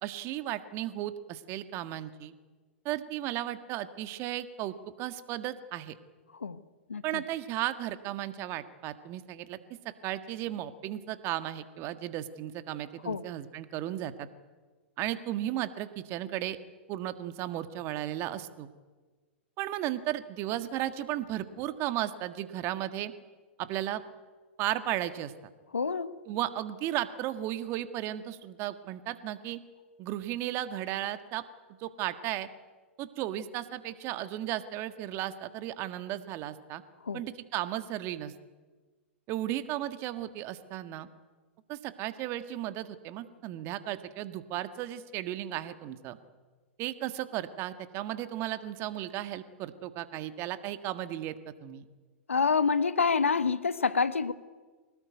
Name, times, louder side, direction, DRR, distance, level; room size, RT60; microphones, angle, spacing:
voice 1, 0.0-2.3 2.9-6.0 7.0-9.6 10.0-14.3 15.0-16.6 16.9-18.7 19.6-23.1 23.6-24.0 24.6-25.3 26.3-29.6 30.0-31.4 31.8-32.5 33.0-36.8 37.1-38.3 39.3-41.1 41.7-46.2 46.8-51.3 51.6-51.8, right 13 dB, 35° right, 11 dB, 1.7 m, -35 dB
voice 2, 6.9-7.2 13.0-13.2 25.7-26.1 37.1-37.2 52.3-54.3, left 5 dB, 80° left, 15 dB, 1.2 m, -27 dB
24.0 x 19.0 x 9.3 m, 1.3 s
figure-of-eight pair, 110°, 7 cm